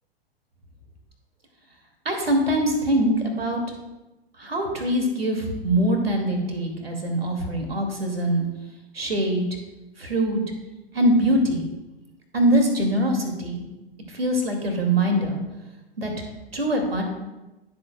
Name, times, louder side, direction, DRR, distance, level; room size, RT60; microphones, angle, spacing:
voice 1, 2.0-3.6 4.4-8.5 8.9-9.4 10.0-10.4 10.9-11.7 12.3-13.6 14.1-15.4 16.0-16.1 16.5-17.0, right 1 dB, 75° right, 3 dB, 2.3 m, -23 dB
15.5 x 7.6 x 2.3 m, 1.0 s
figure-of-eight pair, 100°, 30 cm